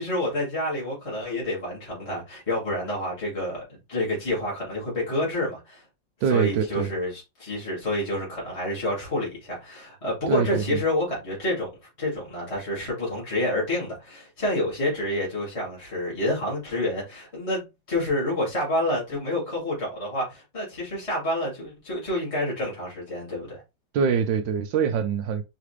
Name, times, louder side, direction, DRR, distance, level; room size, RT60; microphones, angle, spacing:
voice 1, 0.0-5.8 6.3-11.7 12.0-17.6 17.9-23.6, left 1 dB, 15° left, 2.3 m, -28 dB
voice 2, 6.2-6.9 10.3-10.8 23.9-25.4, right 6 dB, 80° right, 1.2 m, -24 dB
4.9 x 3.3 x 3.2 m
omnidirectional pair, 2.1 m